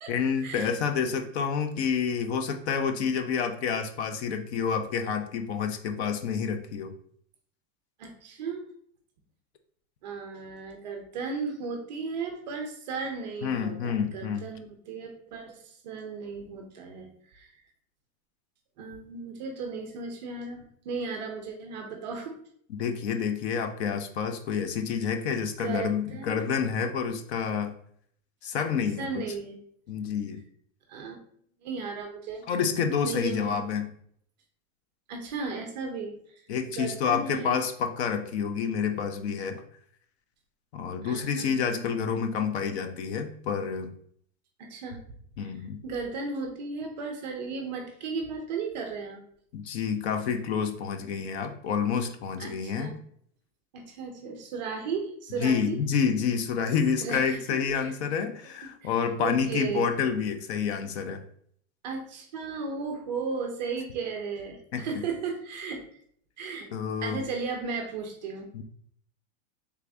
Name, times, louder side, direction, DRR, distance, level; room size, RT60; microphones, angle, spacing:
voice 1, 0.1-6.9 13.4-14.4 22.7-27.7 28.4-29.2 29.9-30.4 32.5-33.9 36.5-39.6 40.7-43.9 45.4-45.8 49.5-52.9 55.4-61.2 64.7-65.0 66.7-67.2 68.5-68.6, left 6 dB, 55° left, 8 dB, 0.5 m, -28 dB
voice 2, 8.0-8.6 10.0-17.5 18.8-22.4 25.6-26.5 29.0-29.6 30.9-31.2 31.6-32.4 33.0-33.6 35.1-36.4 36.7-37.6 41.0-41.8 44.6-45.0 45.4-45.5 45.8-49.2 52.4-52.9 53.7-55.8 56.9-57.9 58.8-59.9 61.8-65.8 66.4-66.7 67.0-68.5, right 4 dB, 35° right, 4 dB, 0.4 m, -35 dB
3.4 x 2.5 x 3.3 m, 0.63 s
supercardioid pair, 165°, 40 cm